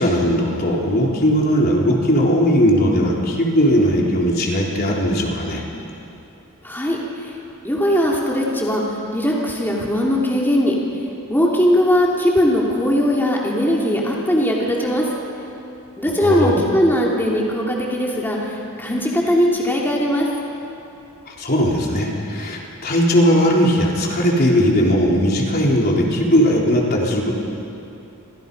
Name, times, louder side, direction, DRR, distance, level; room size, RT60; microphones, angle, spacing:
voice 1, 0.0-5.6 16.2-16.6 21.3-27.3, equal, 45° left, -2 dB, 3.9 m, -18 dB
voice 2, 6.6-7.0 7.6-8.8 9.1-10.7 11.3-15.0 16.0-18.4 18.8-20.3, equal, 10° left, -4 dB, 2.9 m, -19 dB
29.5 x 26.5 x 5.5 m, 2.8 s
head